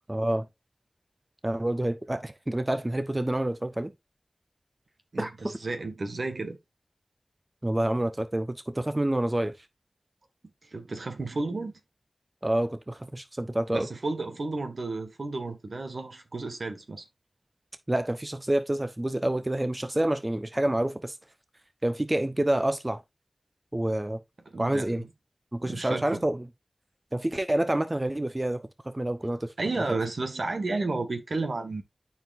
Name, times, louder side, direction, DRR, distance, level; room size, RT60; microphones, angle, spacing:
voice 1, 0.1-0.5 1.4-3.9 5.2-5.3 7.6-9.5 12.4-13.9 17.9-21.2 21.8-23.0 23.7-24.2 24.6-25.0 25.5-26.4 27.1-29.5, right 1 dB, 30° right, 0.9 m, -28 dB
voice 2, 5.1-6.6 10.7-11.7 13.7-17.0 24.4-25.1 25.7-26.2 29.6-31.8, right 3 dB, 75° right, 1.7 m, -32 dB
13.0 x 4.7 x 2.5 m
cardioid pair, 40°, 0 cm